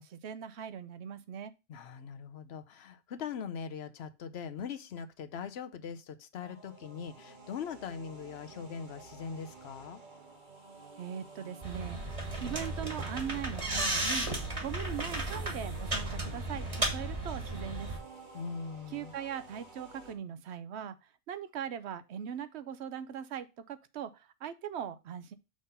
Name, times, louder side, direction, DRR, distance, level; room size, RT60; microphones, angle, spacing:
voice 1, 0.0-1.5 11.0-12.0 12.4-14.3 14.6-17.9 18.9-21.0 21.3-25.3, right 8 dB, 80° right, 0.9 m, -40 dB
voice 2, 1.7-10.0 18.3-19.1, left 6 dB, 70° left, 0.9 m, -41 dB
sound 1, 6.4-20.1, right 4 dB, 45° right, 1.3 m, -52 dB
sound 2, 11.6-18.0, right 2 dB, 30° right, 1.4 m, -34 dB
6.3 x 3.7 x 5.4 m
omnidirectional pair, 1.1 m